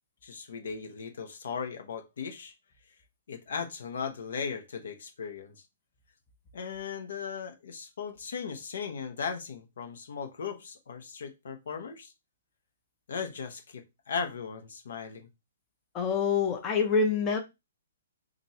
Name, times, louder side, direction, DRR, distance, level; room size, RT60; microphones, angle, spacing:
voice 1, 0.2-2.5 3.3-5.6 6.5-12.1 13.1-15.3, left 6 dB, 75° left, 1.0 m, -37 dB
voice 2, 15.9-17.4, left 5 dB, 25° left, 0.7 m, -26 dB
2.9 x 2.5 x 4.2 m
hypercardioid pair, 145°, 0 cm